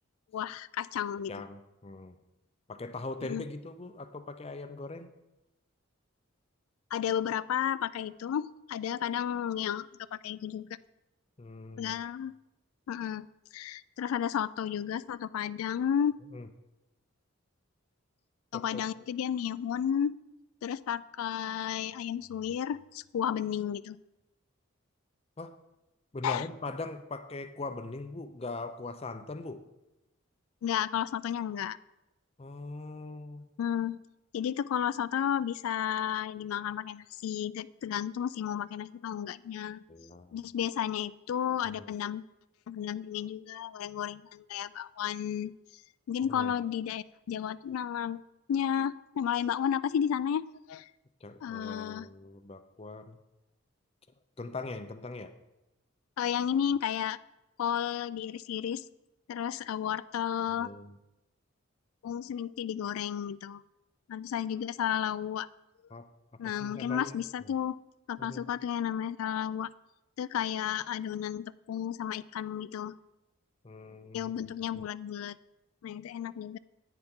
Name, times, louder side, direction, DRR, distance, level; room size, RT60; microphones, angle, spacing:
voice 1, 0.3-1.4 3.2-3.4 6.9-10.7 11.8-12.3 12.9-13.3 13.5-16.2 18.5-20.2 20.6-24.0 26.2-26.5 30.6-31.8 33.6-34.0 34.3-39.8 40.3-42.2 42.7-45.5 46.1-48.2 48.5-50.9 51.4-52.1 56.2-57.2 57.6-58.8 59.3-60.7 62.0-63.6 64.1-65.5 66.4-67.8 68.1-69.7 70.2-72.9 74.1-75.4 75.8-76.6, left 9 dB, 80° left, 17 dB, 0.3 m, -32 dB
voice 2, 1.3-2.2 2.7-5.1 11.4-12.0 16.3-16.5 18.5-18.9 25.4-25.5 26.1-29.6 32.4-33.5 39.9-40.4 41.7-41.9 46.3-46.5 51.2-53.2 54.4-55.3 60.6-61.0 65.9-66.1 66.4-67.2 67.4-67.5 68.2-68.4 73.6-74.3, left 3 dB, 30° left, 9 dB, 0.5 m, -41 dB
10.5 x 9.1 x 3.7 m, 0.97 s
head